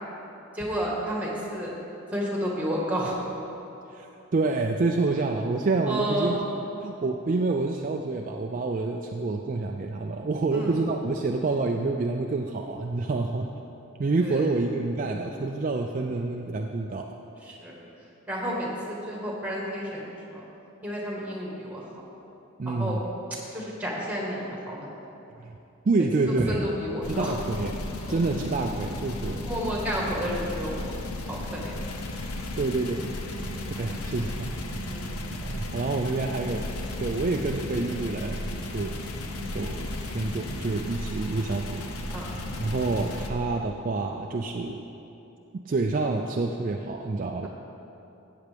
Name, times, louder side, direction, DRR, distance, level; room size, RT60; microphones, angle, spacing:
voice 1, 0.5-1.7 2.1-3.2 5.9-6.4 10.5-10.8 14.2-14.4 17.4-17.7 18.3-20.4 20.8-21.8 22.7-23.0 23.5-24.9 26.4-27.3 28.1-28.2 29.5-30.9 31.3-31.7 33.7-34.1 34.8-35.2 42.1-42.3, equal, 5° right, -3 dB, 1.5 m, -31 dB
voice 2, 3.9-6.5 6.8-13.5 14.0-17.1 22.6-23.0 25.4-25.6 25.8-26.6 27.1-27.8 28.1-29.4 32.6-33.0 33.8-34.6 35.4-36.7 37.0-38.5 38.7-39.0 39.5-39.9 40.1-41.8 42.6-44.8 45.7-47.5, right 3 dB, 35° right, 2 dB, 0.4 m, -27 dB
sound 1, 27.0-43.3, left 1 dB, 90° left, 0.9 m, -34 dB
14.0 x 8.5 x 3.4 m, 3.0 s
head